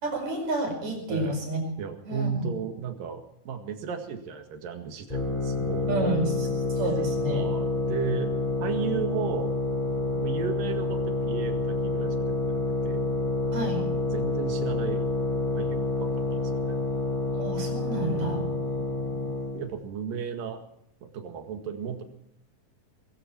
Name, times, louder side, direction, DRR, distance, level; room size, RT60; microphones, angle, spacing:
voice 1, 0.0-1.6 2.1-2.5 5.9-6.3 6.8-7.5 13.5-13.9 17.3-18.4, right 2 dB, 55° right, 3 dB, 6.3 m, -30 dB
voice 2, 1.8-6.3 7.3-8.3 8.6-9.6 10.1-13.1 13.9-15.1 15.5-16.8 17.9-20.6 21.0-22.0, right 7 dB, 75° right, 6 dB, 3.6 m, -35 dB
sound 1, 5.1-19.7, left 2 dB, 10° left, 4.4 m, -28 dB
21.5 x 14.5 x 4.6 m, 0.73 s
omnidirectional pair, 4.0 m